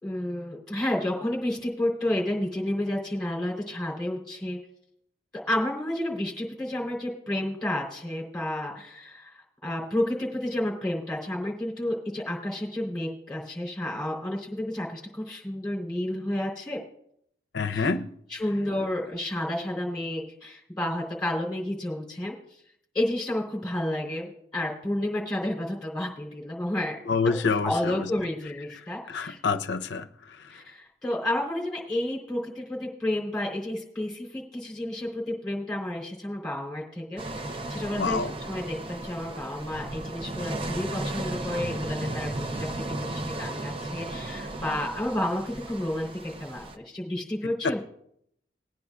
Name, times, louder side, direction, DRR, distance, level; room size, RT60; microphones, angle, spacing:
voice 1, 0.0-4.6 5.5-16.8 17.7-17.9 18.3-22.3 22.9-27.0 27.4-29.4 30.5-37.2 37.7-42.3 42.6-47.8, left 1 dB, 5° left, 3.4 m, -31 dB
voice 2, 17.5-18.1 27.1-28.1 29.1-30.1 38.0-38.3 47.6-47.7, left 4 dB, 80° left, 0.5 m, -26 dB
sound 1, 37.2-46.8, right 2 dB, 30° right, 0.6 m, -35 dB
20.5 x 9.6 x 2.3 m
head